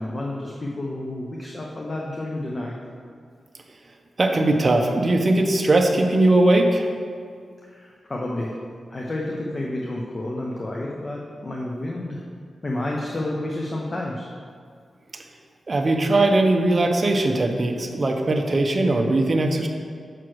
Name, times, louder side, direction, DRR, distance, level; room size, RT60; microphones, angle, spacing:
voice 1, 0.0-2.8 7.6-8.6 8.9-12.2 12.6-14.3, left 1 dB, 30° left, -2 dB, 0.8 m, -30 dB
voice 2, 4.2-6.9 15.7-19.7, right 2 dB, 40° right, 3 dB, 0.7 m, -19 dB
6.0 x 4.5 x 6.3 m, 2.1 s
wide cardioid pair, 105°, 0 cm